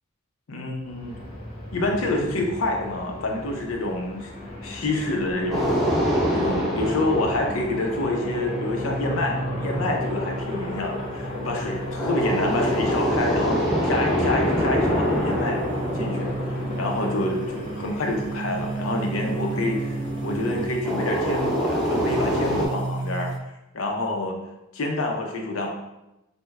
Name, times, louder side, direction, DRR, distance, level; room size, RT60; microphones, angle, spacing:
voice 1, 0.5-1.2 1.7-4.3 4.6-5.7 6.3-15.6 15.9-23.3 23.7-24.4 24.7-25.7, left 2 dB, 70° left, 1 dB, 0.6 m, -27 dB
Aircraft, 0.8-20.7, left 1 dB, 30° right, 1.2 m, -34 dB
sound 1, 5.4-23.4, right 2 dB, 55° right, 0.3 m, -35 dB
sound 2, 5.5-8.6 12.0-17.4 20.8-22.7, equal, ahead, 0.5 m, -25 dB
3.4 x 2.1 x 3.1 m, 0.94 s
head